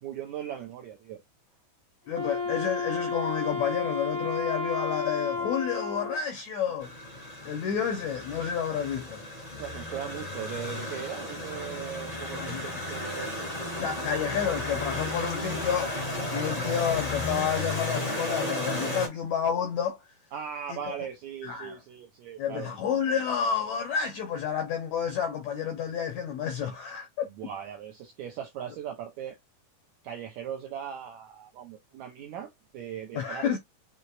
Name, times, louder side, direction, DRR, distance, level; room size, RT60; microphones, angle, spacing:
voice 1, 0.0-1.2 9.6-13.3 20.3-22.8 27.4-29.4 30.0-33.6, right 9 dB, 85° right, 1.6 m, -39 dB
voice 2, 2.1-6.9 7.4-9.2 12.3-12.6 13.8-15.9 16.3-20.0 20.7-20.8 21.4-21.8 22.4-27.3 33.1-33.6, left 8 dB, 80° left, 1.6 m, -30 dB
Wind instrument woodwind instrument, 2.1-6.2, left 3 dB, 25° right, 0.4 m, -32 dB
sound 1, 6.8-19.1, left 1 dB, 45° left, 0.4 m, -34 dB
6.3 x 2.9 x 2.4 m
omnidirectional pair, 4.1 m